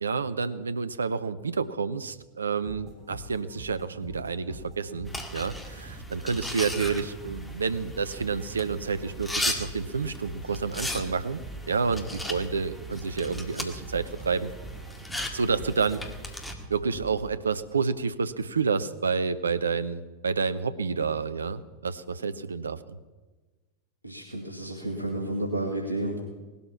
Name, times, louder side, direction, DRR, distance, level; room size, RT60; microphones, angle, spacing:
voice 1, 0.0-11.4 11.7-14.5 15.3-16.0 16.7-22.8, right 5 dB, 75° right, 14 dB, 0.8 m, -29 dB
sound 1, 2.6-17.9, right 2 dB, 30° right, 4.4 m, -45 dB
sound 2, 5.1-16.5, left 1 dB, 5° left, 1.9 m, -37 dB
voice 2, 24.0-26.2, right 1 dB, 90° left, -1 dB, 2.3 m, -31 dB
18.5 x 12.5 x 5.9 m, 1.3 s
figure-of-eight pair, 90°, 0 cm